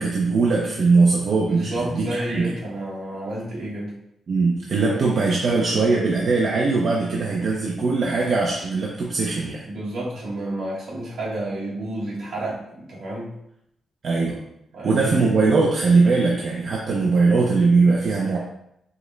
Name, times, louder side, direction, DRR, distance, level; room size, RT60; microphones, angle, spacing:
voice 1, 0.0-2.5 4.3-9.6 14.0-14.4 14.8-18.4, right 4 dB, 45° right, -2 dB, 0.5 m, -20 dB
voice 2, 1.5-3.9 4.8-5.0 9.7-13.3 14.7-15.3, right 1 dB, 65° right, -6 dB, 1.6 m, -30 dB
5.0 x 2.1 x 3.9 m, 0.78 s
wide cardioid pair, 175°, 0 cm